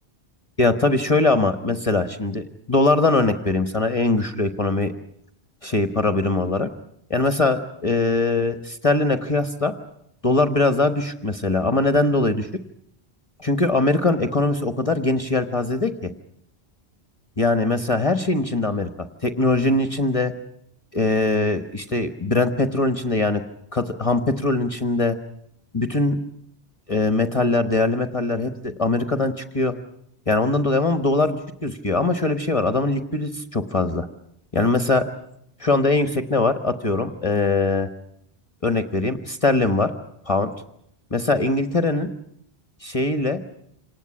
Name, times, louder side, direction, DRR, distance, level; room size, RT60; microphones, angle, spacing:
voice 1, 0.6-2.4 2.7-4.9 5.6-6.7 7.1-9.7 10.2-12.5 13.4-16.1 17.4-20.3 20.9-23.4 23.7-25.2 25.7-26.2 26.9-29.7 30.3-34.1 34.5-35.1 35.6-37.9 38.6-39.9 40.3-40.5 41.1-42.1 42.8-43.4, left 2 dB, 35° left, 8 dB, 1.2 m, -21 dB
27.0 x 19.0 x 8.6 m, 0.75 s
omnidirectional pair, 1.1 m